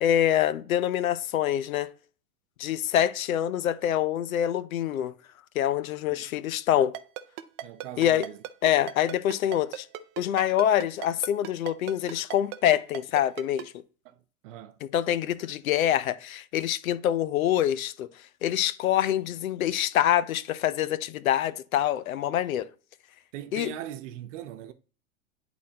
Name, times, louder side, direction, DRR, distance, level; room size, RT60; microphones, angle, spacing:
voice 1, 0.0-1.9 2.6-5.1 5.5-6.9 8.0-8.3 8.6-9.9 10.2-13.7 14.8-18.1 18.4-22.7 23.5-23.7, left 11 dB, 90° left, 0.7 m, -25 dB
Ringtone, 6.9-13.6, right 13 dB, 25° right, 0.4 m, -36 dB
voice 2, 7.6-8.4 14.0-14.8 23.3-24.7, right 11 dB, 65° right, 0.9 m, -40 dB
10.5 x 4.1 x 2.8 m
hypercardioid pair, 130°, 40 cm